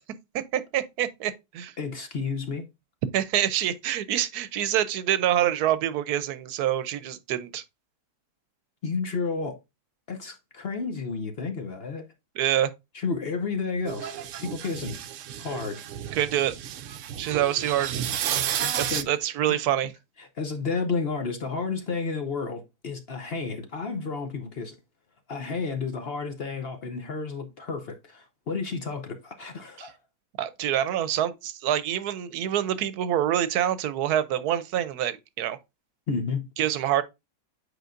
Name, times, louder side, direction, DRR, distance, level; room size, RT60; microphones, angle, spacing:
voice 1, 0.3-1.7 3.1-7.6 12.4-12.7 16.1-16.5 17.2-18.0 18.8-19.9 29.8-29.9 30.4-35.6 36.6-37.0, right 11 dB, 80° right, 1.2 m, -26 dB
voice 2, 1.8-2.6 8.8-9.6 10.1-12.0 12.9-14.1 14.4-15.1 15.4-15.8 18.6-19.1 19.5-19.6 20.2-24.8 25.3-30.0 36.1-36.5, left 4 dB, 50° left, 0.8 m, -31 dB
sound 1, 13.9-19.0, right 10 dB, 65° right, 0.8 m, -32 dB
7.9 x 4.7 x 2.5 m
omnidirectional pair, 1.6 m